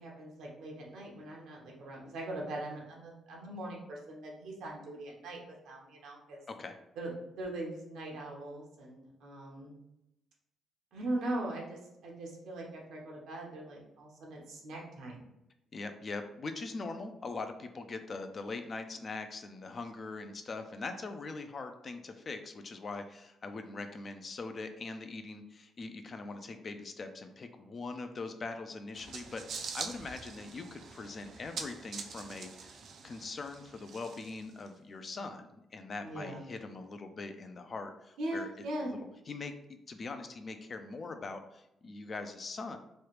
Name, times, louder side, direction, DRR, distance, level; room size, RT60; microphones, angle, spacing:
voice 1, 0.0-6.4 7.0-9.8 10.9-15.2 36.0-36.4 38.2-38.9, right 1 dB, 80° right, -2 dB, 0.9 m, -40 dB
voice 2, 15.7-38.5 38.8-42.8, left 3 dB, 40° left, 7 dB, 0.4 m, -42 dB
sound 1, 28.9-34.7, right 5 dB, 60° right, 0.4 m, -44 dB
3.1 x 2.4 x 3.1 m, 0.85 s
cardioid pair, 90°, 0 cm